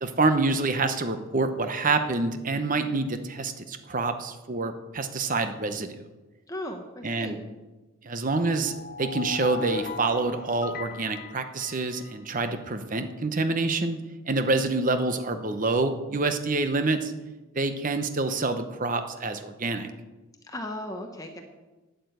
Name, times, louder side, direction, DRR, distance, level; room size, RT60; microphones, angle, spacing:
voice 1, 0.0-6.0 7.0-7.4 8.0-8.7 9.0-14.0 14.3-17.1 17.5-19.9, right 3 dB, 40° right, 8 dB, 0.9 m, -27 dB
voice 2, 6.5-7.4 20.4-21.4, left 1 dB, 15° left, 4 dB, 0.9 m, -36 dB
sound 1, 8.4-12.4, left 4 dB, 45° left, 0.6 m, -38 dB
9.2 x 9.1 x 7.9 m, 1.2 s
head